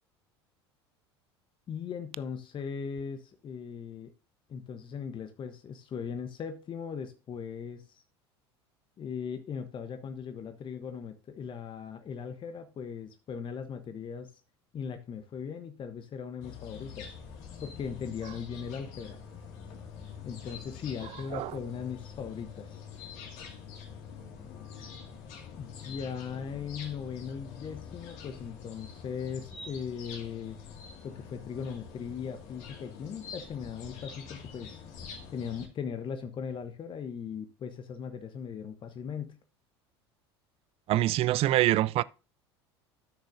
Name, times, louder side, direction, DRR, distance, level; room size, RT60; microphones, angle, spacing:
voice 1, 1.7-4.1 4.5-8.0 9.0-14.4 14.7-17.1 17.6-19.2 20.2-22.8 25.6-30.6 31.0-34.8 35.3-39.4, left 7 dB, 35° left, 1.0 m, -39 dB
sound 1, 16.4-35.7, left 6 dB, 60° left, 2.1 m, -46 dB
voice 2, 40.9-42.0, right 15 dB, 45° right, 0.4 m, -25 dB
13.0 x 6.5 x 2.6 m
hypercardioid pair, 75°, 14 cm